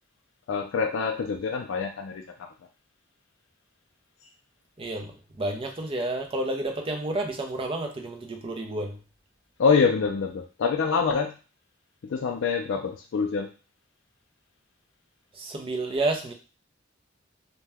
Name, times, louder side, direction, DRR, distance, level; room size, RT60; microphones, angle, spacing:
voice 1, 0.5-2.2 9.6-11.3 12.0-13.5, left 5 dB, 70° left, 3 dB, 0.3 m, -25 dB
voice 2, 4.8-9.0 15.4-16.3, right 2 dB, 30° right, 3 dB, 0.5 m, -30 dB
2.7 x 2.2 x 3.4 m, 0.33 s
head